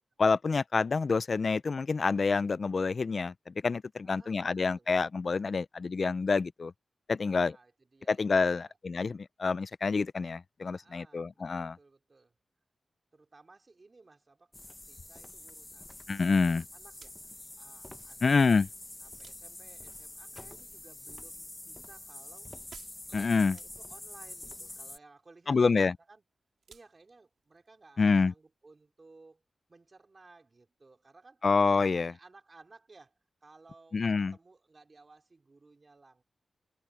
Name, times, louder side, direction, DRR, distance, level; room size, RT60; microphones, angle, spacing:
voice 1, 0.2-6.7 7.1-7.5 8.1-11.8 16.1-16.6 18.2-18.7 23.1-23.6 25.5-25.9 28.0-28.3 31.4-32.1 33.9-34.3, left 4 dB, 45° left, 0.3 m, -27 dB
voice 2, 4.0-4.9 7.2-8.8 10.7-12.4 13.1-18.6 19.0-22.5 23.0-26.2 26.7-29.4 29.7-31.4 31.8-36.2, right 3 dB, 35° right, 4.7 m, -58 dB
sound 1, 14.5-25.0, left 1 dB, 15° left, 0.8 m, -46 dB
sound 2, 16.8-28.8, right 6 dB, 85° right, 3.4 m, -61 dB
wide cardioid pair, 135°, 0 cm